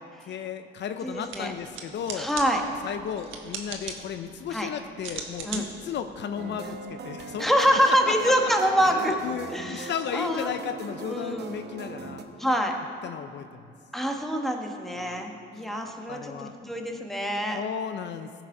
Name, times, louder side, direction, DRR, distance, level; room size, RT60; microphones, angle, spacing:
voice 1, 0.3-2.3 2.8-7.5 8.1-8.5 8.8-12.2 13.0-13.7 15.0-15.3 15.8-16.5 17.5-18.4, left 8 dB, 65° left, 9 dB, 0.5 m, -34 dB
voice 2, 1.0-1.5 2.1-2.6 4.5-4.7 5.4-5.7 6.6-6.8 7.4-9.2 9.5-10.5 11.1-11.5 12.4-12.8 13.9-17.6, equal, ahead, 2 dB, 1.2 m, -26 dB
sound 1, 1.1-7.2, right 5 dB, 85° right, 1.2 m, -41 dB
sound 2, 6.3-12.2, right 4 dB, 55° right, 0.9 m, -40 dB
16.0 x 6.0 x 4.8 m, 2.4 s
cardioid pair, 90°, 20 cm